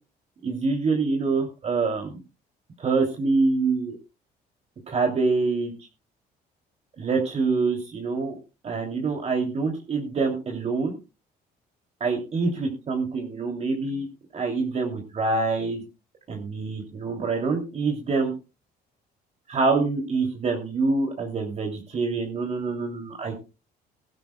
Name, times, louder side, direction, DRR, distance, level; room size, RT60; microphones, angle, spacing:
voice 1, 0.4-2.2 2.8-4.0 4.9-5.7 7.0-8.3 8.6-10.9 12.0-14.1 14.3-15.8 16.3-18.3 19.5-23.4, right 4 dB, 40° right, 1 dB, 3.0 m, -25 dB
19.0 x 12.0 x 2.3 m, 0.29 s
cardioid pair, 110°, 17 cm